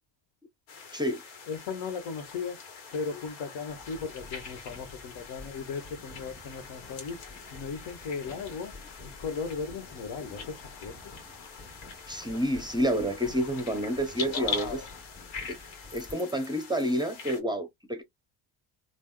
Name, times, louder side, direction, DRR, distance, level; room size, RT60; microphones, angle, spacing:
sound 1, 0.7-17.4, left 5 dB, 85° left, 1.3 m, -43 dB
voice 1, 1.5-2.6 2.9-7.2 7.5-8.8 9.0-11.1 14.2-14.9, left 5 dB, 65° left, 1.3 m, -37 dB
sound 2, 3.7-16.1, left 2 dB, 20° left, 1.4 m, -50 dB
voice 2, 12.1-14.8 15.5-15.6 15.9-18.0, equal, 10° right, 0.7 m, -29 dB
3.4 x 2.4 x 2.2 m
supercardioid pair, 95°, 44 cm